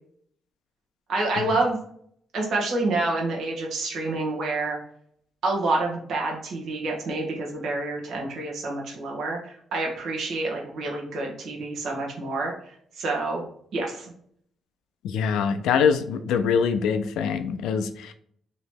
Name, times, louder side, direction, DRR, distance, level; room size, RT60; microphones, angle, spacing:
voice 1, 1.1-1.8 2.3-4.8 5.4-12.5 13.0-13.5 13.7-14.1, right 2 dB, 70° right, -2 dB, 1.1 m, -28 dB
voice 2, 15.0-18.1, left 6 dB, 90° left, 9 dB, 0.4 m, -24 dB
3.0 x 2.8 x 4.5 m, 0.64 s
cardioid pair, 80°, 0 cm